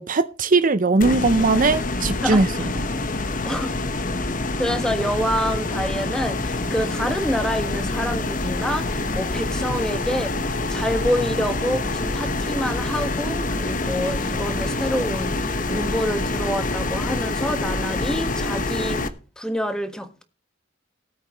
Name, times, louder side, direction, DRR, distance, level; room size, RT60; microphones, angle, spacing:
voice 1, 0.0-2.7, right 3 dB, 45° right, 0.6 m, -19 dB
sound 1, 1.0-19.1, left 2 dB, 45° left, 1.2 m, -26 dB
voice 2, 4.6-19.0 19.4-20.2, equal, 5° left, 1.4 m, -27 dB
19.5 x 8.4 x 3.0 m
head